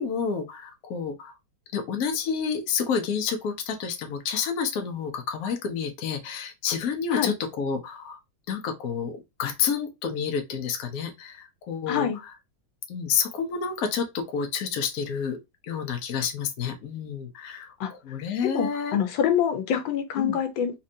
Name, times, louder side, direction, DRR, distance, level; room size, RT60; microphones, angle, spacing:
voice 1, 0.0-1.3 1.7-8.2 8.5-12.1 12.9-15.4 15.6-19.0 20.2-20.4, left 6 dB, 60° left, 1.1 m, -29 dB
voice 2, 11.9-12.2 17.8-17.9 18.4-20.7, left 8 dB, 85° left, 1.5 m, -25 dB
4.2 x 2.6 x 2.6 m
omnidirectional pair, 2.0 m